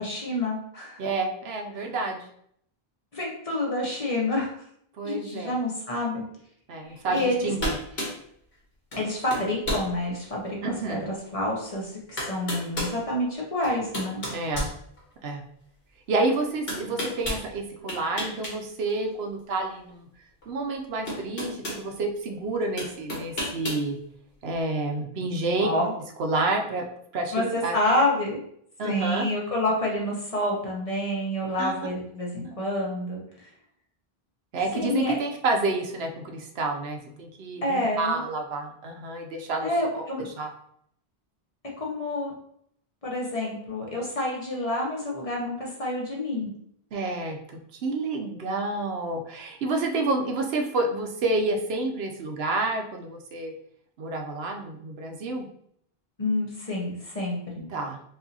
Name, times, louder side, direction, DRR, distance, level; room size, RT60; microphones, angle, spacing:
voice 1, 0.0-1.0 1.7-1.9 3.1-4.5 5.0-6.2 6.8-7.5 9.0-14.2 25.6-25.9 27.3-28.4 28.8-33.5 34.7-35.1 37.6-38.2 39.6-40.3 41.8-42.3 43.0-46.5 56.2-57.7, left 1 dB, 35° left, -2 dB, 1.0 m, -28 dB
voice 2, 1.0-2.2 5.0-5.5 6.7-8.1 10.6-11.1 14.3-14.7 15.2-15.4 16.1-20.1 20.5-24.0 24.4-25.7 26.2-26.9 27.1-27.8 28.8-29.3 31.6-31.7 32.4-32.5 34.5-39.7 40.4-40.5 46.9-53.5 54.0-55.5 57.7-58.1, right 2 dB, 80° right, 3 dB, 0.9 m, -29 dB
sound 1, 7.2-7.3 7.6-8.2 8.9-9.1 9.3-9.9 10.5-10.6 11.7-11.8 12.2-13.0 13.6-15.3 16.7-17.4 17.9-18.6 18.9-19.0 20.4-20.5 21.1-21.8 22.8-23.8, left 1 dB, 70° left, 1.5 m, -31 dB
4.7 x 2.6 x 2.7 m, 0.68 s
omnidirectional pair, 1.0 m